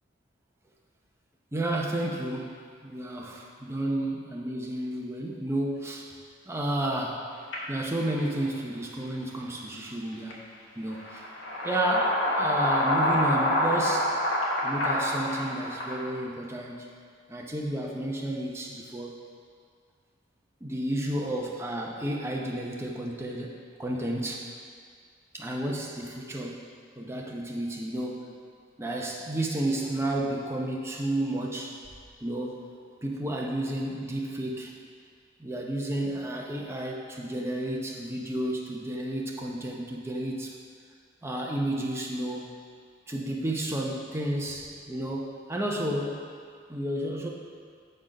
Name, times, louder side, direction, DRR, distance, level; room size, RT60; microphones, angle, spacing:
voice 1, 1.5-2.6 2.8-6.1 6.5-7.3 7.7-10.5 10.8-11.3 11.6-14.2 14.6-16.9 17.3-19.2 20.6-23.5 23.8-24.5 25.3-26.6 27.0-28.3 28.8-31.8 32.2-32.7 33.0-34.7 35.4-40.5 41.2-42.6 43.1-46.3 46.7-47.3, right 1 dB, 15° right, -1 dB, 0.7 m, -31 dB
sound 1, 7.5-7.6 8.1-8.2 10.3-10.4 11.0-16.0, left 1 dB, 80° left, 1.3 m, -27 dB
7.4 x 4.4 x 5.2 m, 2.1 s
head